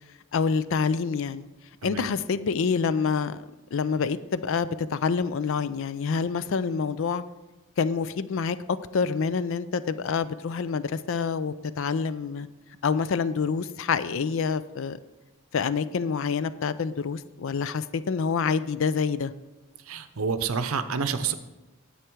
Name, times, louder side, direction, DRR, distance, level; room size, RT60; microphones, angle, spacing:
voice 1, 0.3-1.5 1.8-3.4 3.7-7.2 7.8-8.6 8.9-12.5 12.8-15.0 15.5-19.3, left 5 dB, 65° left, 15 dB, 0.4 m, -27 dB
voice 2, 19.9-21.3, right 5 dB, 80° right, 11 dB, 0.7 m, -28 dB
10.0 x 7.8 x 4.6 m, 1.1 s
head